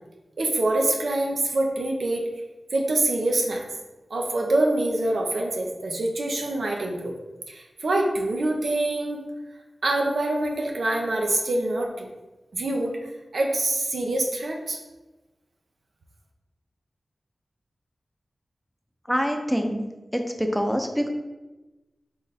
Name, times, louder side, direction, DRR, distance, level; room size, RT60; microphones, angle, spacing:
voice 1, 0.4-2.2 2.7-3.7 4.1-7.1 7.5-9.2 9.8-12.1 12.5-14.8, right 2 dB, 85° right, 1 dB, 0.7 m, -25 dB
voice 2, 19.1-19.9 20.1-21.1, equal, ahead, 4 dB, 0.5 m, -25 dB
3.9 x 3.3 x 4.0 m, 1.1 s
wide cardioid pair, 95°, 0 cm